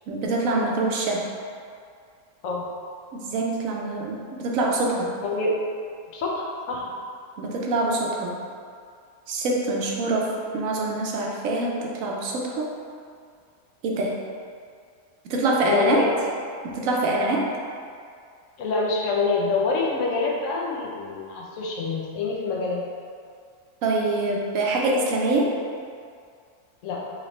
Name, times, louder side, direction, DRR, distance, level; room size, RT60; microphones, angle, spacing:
voice 1, 0.1-1.3 3.1-5.1 7.4-8.4 9.3-12.7 13.8-14.1 15.3-16.1 16.6-17.5 23.8-25.5, right 2 dB, 90° right, -1 dB, 1.1 m, -25 dB
voice 2, 5.2-5.5 6.1-6.9 15.6-16.1 18.6-22.8 26.8-27.0, left 4 dB, 75° left, -2 dB, 1.0 m, -26 dB
3.8 x 3.2 x 3.1 m, 2.2 s
omnidirectional pair, 1.4 m